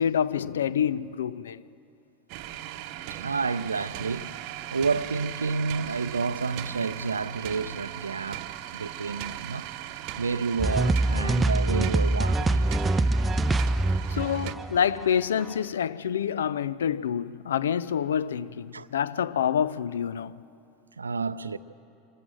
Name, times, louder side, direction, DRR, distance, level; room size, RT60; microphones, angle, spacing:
voice 1, 0.0-1.6 14.1-20.4, left 8 dB, 75° left, 0.4 m, -27 dB
sound 1, 2.3-14.5, right 13 dB, 55° right, 0.9 m, -39 dB
voice 2, 3.1-4.3 4.7-8.4 8.7-9.7 10.2-12.7 18.7-18.9 21.0-21.6, right 4 dB, 85° right, 0.5 m, -30 dB
sound 2, 10.6-15.5, right 2 dB, 15° right, 0.6 m, -24 dB
25.0 x 14.0 x 7.7 m
figure-of-eight pair, 85°, 0 cm